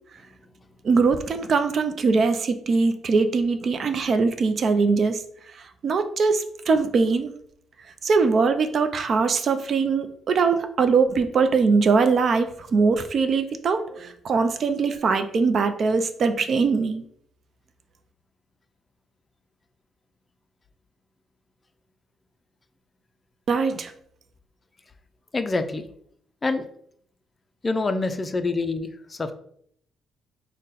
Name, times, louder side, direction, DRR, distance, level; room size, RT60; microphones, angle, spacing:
voice 1, 0.8-5.2 5.8-7.3 8.0-17.0 23.5-23.9, right 4 dB, 55° right, 8 dB, 0.4 m, -22 dB
voice 2, 25.3-25.8 26.4-26.6 27.6-29.3, left 3 dB, 25° left, 9 dB, 0.4 m, -26 dB
3.8 x 2.1 x 4.0 m, 0.67 s
cardioid pair, 90°, 0 cm